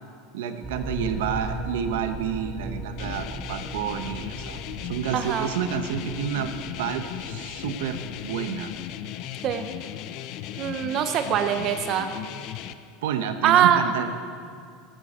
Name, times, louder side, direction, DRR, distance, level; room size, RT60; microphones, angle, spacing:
voice 1, 0.3-8.7 13.0-14.2, right 8 dB, 85° right, 8 dB, 1.0 m, -30 dB
sound 1, 0.6-8.9, right 1 dB, 20° right, 2.9 m, -38 dB
sound 2, 3.0-12.7, left 11 dB, 50° left, 0.6 m, -36 dB
voice 2, 5.1-5.5 9.4-9.7 10.6-12.1 13.4-13.8, right 10 dB, 40° right, 8 dB, 0.7 m, -22 dB
14.0 x 13.0 x 4.3 m, 2.3 s
supercardioid pair, 150°, 0 cm